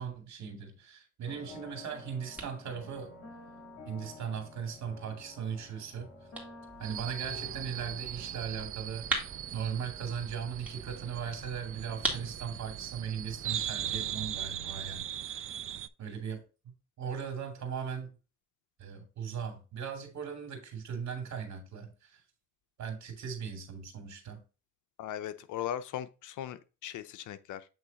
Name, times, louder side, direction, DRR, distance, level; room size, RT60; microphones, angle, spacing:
voice 1, 0.0-3.1 3.9-6.1 6.8-9.1 9.5-15.4 16.0-16.4 17.0-18.1 18.8-22.2 22.8-24.4, right 7 dB, 65° right, 2.3 m, -38 dB
sound 1, 1.3-14.3 14.6-14.7, left 2 dB, 50° left, 2.6 m, -52 dB
sound 2, 1.5-15.0, right 1 dB, 5° right, 2.0 m, -43 dB
sound 3, 6.8-15.9, right 10 dB, 45° right, 0.4 m, -39 dB
voice 2, 25.0-27.7, left 11 dB, 80° left, 0.7 m, -38 dB
8.1 x 3.1 x 3.9 m
cardioid pair, 90°, 30 cm